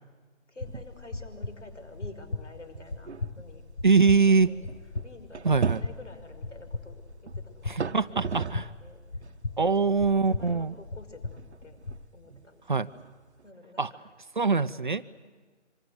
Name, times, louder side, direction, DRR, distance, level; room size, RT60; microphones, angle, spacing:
voice 1, 0.5-3.1 3.4-3.6 4.0-4.7 5.0-7.0 7.3-9.0 9.6-11.8 12.1-12.8 13.4-14.0 15.2-15.3, left 2 dB, 70° left, 8 dB, 6.0 m, -49 dB
sound 1, 0.6-12.0, left 3 dB, 40° left, 1.3 m, -39 dB
sound 2, 0.6-1.1 1.4-1.5 2.2-2.3 2.7-8.8 9.2-13.5, right 6 dB, 60° right, 1.0 m, -37 dB
voice 2, 3.8-4.5 5.4-5.8 7.7-8.6 9.6-10.7 12.7-12.9 13.8-13.9 14.4-15.0, right 4 dB, 40° right, 13 dB, 0.7 m, -23 dB
27.0 x 25.5 x 8.1 m, 1.4 s
figure-of-eight pair, 165°, 37 cm